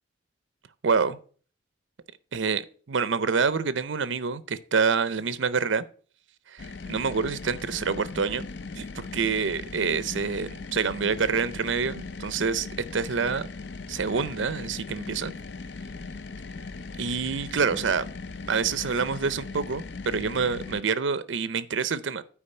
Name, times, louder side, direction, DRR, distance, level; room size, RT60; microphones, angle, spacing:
voice 1, 0.8-1.2 2.3-5.8 6.5-8.5 8.8-13.5 13.9-15.3 17.0-18.0 18.5-22.2, right 5 dB, 75° right, 0.6 m, -27 dB
sound 1, 6.6-20.8, left 4 dB, 60° left, 0.5 m, -39 dB
8.6 x 4.8 x 6.7 m
head